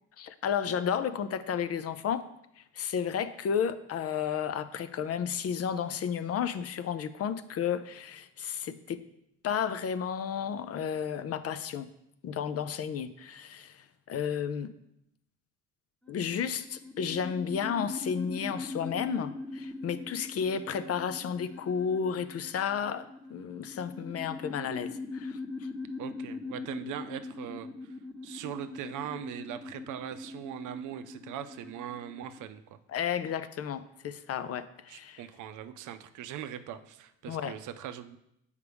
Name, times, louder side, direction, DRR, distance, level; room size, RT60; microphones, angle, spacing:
voice 1, 0.2-2.3 2.6-9.0 9.4-11.9 12.2-14.7 16.1-25.7 32.9-35.2 37.3-37.6, left 7 dB, 50° left, 12 dB, 0.5 m, -32 dB
sound 1, 16.0-32.4, left 3 dB, 5° left, 1.0 m, -41 dB
voice 2, 26.0-27.9 28.2-32.8 34.9-38.2, right 10 dB, 65° right, 10 dB, 0.5 m, -40 dB
6.7 x 4.9 x 3.4 m, 0.79 s
supercardioid pair, 65°, 33 cm